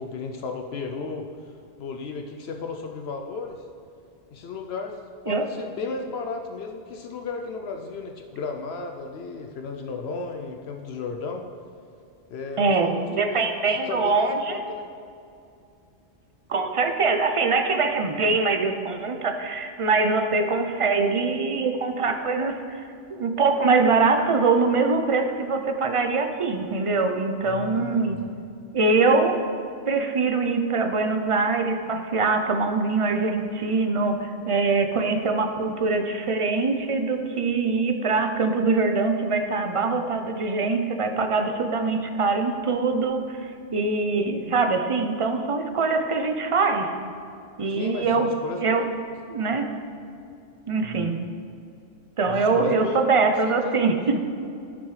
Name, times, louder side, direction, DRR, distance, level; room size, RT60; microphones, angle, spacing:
voice 1, 0.0-1.5 1.8-3.7 4.3-11.5 12.3-13.4 13.7-14.9 27.4-28.3 47.6-48.8 50.8-51.1 52.2-53.1 53.4-53.6, left 4 dB, 75° left, 4 dB, 0.8 m, -34 dB
voice 2, 12.6-14.6 16.5-22.8 23.1-28.2 28.7-29.4 29.9-46.9 47.6-48.3 48.6-48.9 49.3-49.7 50.7-51.2 52.2-54.2, right 4 dB, 40° right, 6 dB, 0.5 m, -23 dB
12.5 x 6.0 x 3.2 m, 2.5 s
omnidirectional pair, 1.1 m